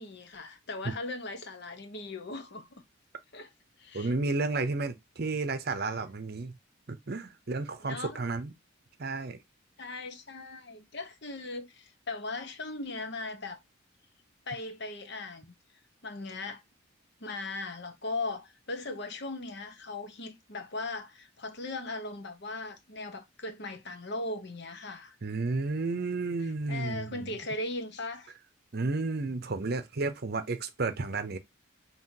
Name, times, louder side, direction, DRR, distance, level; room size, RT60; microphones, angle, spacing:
voice 1, 0.0-2.7 3.3-3.5 3.8-4.1 7.8-8.2 9.8-13.6 14.5-15.5 16.0-16.6 17.2-25.2 26.4-28.3, left 2 dB, 55° left, 1.0 m, -38 dB
voice 2, 3.9-6.6 6.9-8.5 9.0-9.4 25.2-27.3 28.7-31.4, right 3 dB, 50° right, 0.7 m, -32 dB
5.5 x 2.9 x 2.8 m
head